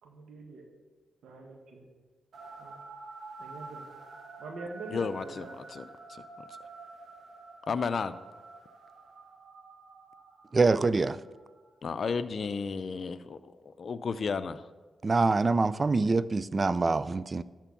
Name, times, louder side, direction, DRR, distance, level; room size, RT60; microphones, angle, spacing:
voice 1, 0.0-0.6 1.2-1.8 2.6-2.7 3.4-3.9 4.4-5.5, right 3 dB, 80° right, 2 dB, 1.6 m, -44 dB
sound 1, 2.3-11.8, right 3 dB, 65° right, 1.3 m, -48 dB
voice 2, 4.9-6.6 7.7-8.1 11.8-14.7, left 5 dB, 60° left, 13 dB, 0.5 m, -33 dB
voice 3, 10.5-11.2 15.0-17.4, right 3 dB, 40° right, 17 dB, 0.4 m, -25 dB
12.0 x 4.5 x 7.1 m, 1.3 s
supercardioid pair, 50°, 0 cm